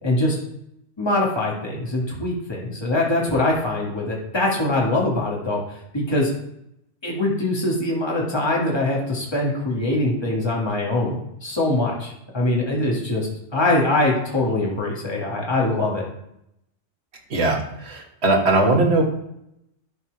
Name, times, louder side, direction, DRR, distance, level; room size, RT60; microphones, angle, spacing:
voice 1, 0.0-0.4 1.0-5.6 5.9-6.3 7.0-11.2 11.4-16.1, left 2 dB, 20° left, -3 dB, 1.9 m, -23 dB
voice 2, 17.3-19.0, right 2 dB, 60° right, 1 dB, 1.8 m, -20 dB
12.0 x 4.4 x 4.7 m, 0.79 s
omnidirectional pair, 1.2 m